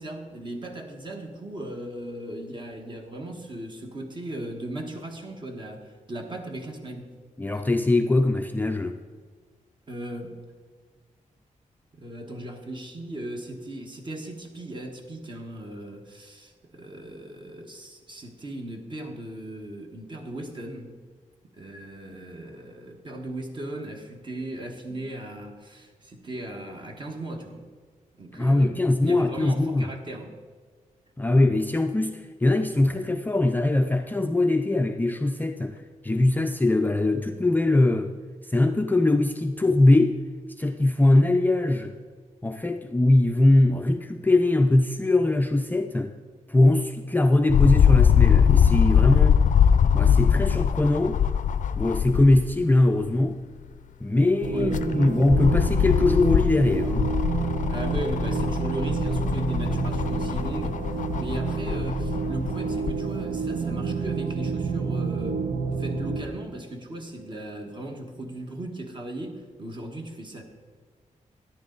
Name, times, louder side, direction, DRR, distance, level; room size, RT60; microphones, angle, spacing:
voice 1, 0.0-7.1 9.9-10.4 11.9-20.9 21.5-27.6 28.2-28.8 29.0-30.3 54.5-54.9 57.7-65.4 65.8-70.4, right 1 dB, 35° right, 3 dB, 1.5 m, -37 dB
voice 2, 7.4-9.0 28.3-29.9 31.2-35.8 36.0-38.1 38.5-40.2 40.6-41.9 42.4-46.1 46.5-49.4 49.9-51.2 51.8-53.4 54.0-57.1, left 2 dB, 15° left, 5 dB, 0.4 m, -21 dB
sound 1, 47.5-52.5 53.0-53.1 54.4-63.0 63.7-63.8, left 8 dB, 70° left, 0.5 m, -22 dB
sound 2, 54.4-66.2, right 5 dB, 65° right, 1.0 m, -29 dB
13.5 x 11.0 x 3.9 m, 1.5 s
wide cardioid pair, 145°, 14 cm